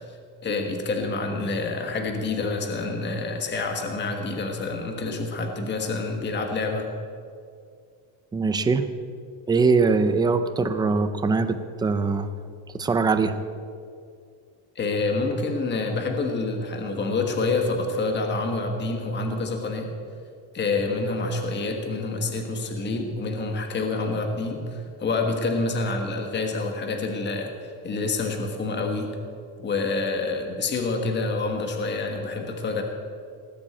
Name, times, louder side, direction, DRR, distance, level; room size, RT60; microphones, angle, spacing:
voice 1, 0.4-6.9 14.7-19.9 20.5-27.5 27.8-29.1 29.6-32.8, left 3 dB, 20° left, 4 dB, 1.4 m, -27 dB
voice 2, 8.3-8.8 9.5-12.3 12.7-13.4, right 4 dB, 10° right, 9 dB, 0.4 m, -22 dB
18.5 x 7.4 x 8.5 m, 2.3 s
cardioid pair, 165°, 48 cm